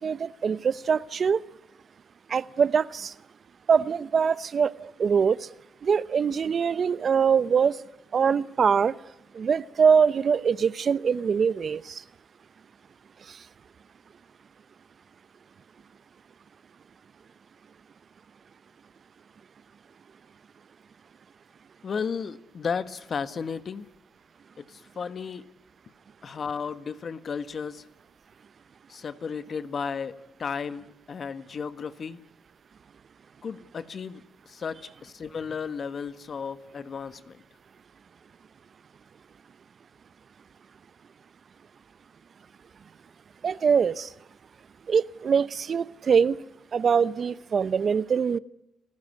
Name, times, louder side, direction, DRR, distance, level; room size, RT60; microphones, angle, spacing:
voice 1, 0.0-1.4 2.3-3.1 3.7-5.5 5.8-7.8 8.1-9.0 9.3-12.0 13.3-13.4 43.4-44.1 44.9-46.4 46.7-48.4, right 6 dB, 50° right, 0.8 m, -23 dB
voice 2, 21.8-23.9 24.6-25.4 26.2-27.9 28.9-32.2 33.4-37.4, left 6 dB, 50° left, 1.5 m, -34 dB
29.5 x 16.0 x 9.4 m
cardioid pair, 80°, 0 cm